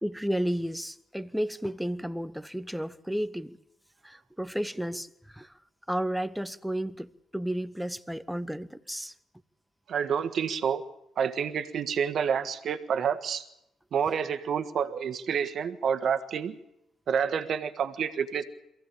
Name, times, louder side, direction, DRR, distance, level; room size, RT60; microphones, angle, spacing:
voice 1, 0.0-3.6 4.0-5.5 5.9-9.1, equal, ahead, 0.9 m, -32 dB
voice 2, 9.9-10.8 11.2-13.4 13.9-16.6 17.1-18.4, right 7 dB, 60° right, 1.5 m, -28 dB
23.0 x 16.0 x 8.9 m
cardioid pair, 90°, 0 cm